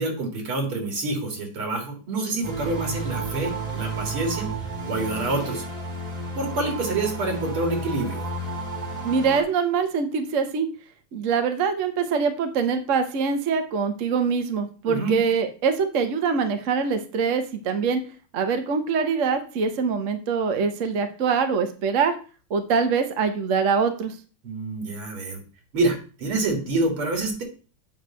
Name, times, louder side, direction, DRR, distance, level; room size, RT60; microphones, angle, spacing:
voice 1, 0.0-4.5 4.8-5.6 6.3-8.3 14.8-15.2 24.4-25.4 25.7-27.4, right 2 dB, 75° right, 2 dB, 2.9 m, -27 dB
sound 1, 2.4-9.4, right 2 dB, 20° right, 1.4 m, -32 dB
voice 2, 9.0-10.7 11.1-18.0 18.3-22.1 22.5-24.1, right 5 dB, 50° right, 7 dB, 0.9 m, -24 dB
9.0 x 3.2 x 6.1 m, 0.37 s
omnidirectional pair, 2.4 m